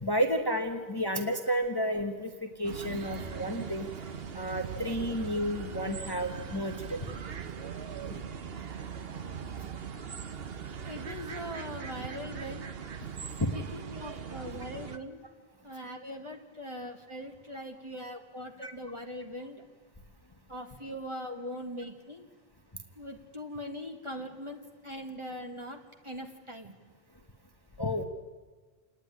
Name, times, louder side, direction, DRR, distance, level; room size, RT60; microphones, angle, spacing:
voice 1, 0.0-3.9 4.3-7.0 8.1-8.2 13.4-13.5 18.6-18.7 27.8-28.0, equal, 25° left, 4 dB, 1.1 m, -31 dB
sound 1, 2.6-15.0, right 7 dB, 65° right, 1.2 m, -40 dB
voice 2, 10.8-12.7 13.5-15.2 15.6-19.6 20.5-22.2 23.0-26.8, equal, 30° right, 3 dB, 1.8 m, -41 dB
28.5 x 10.0 x 9.8 m, 1.4 s
omnidirectional pair, 1.1 m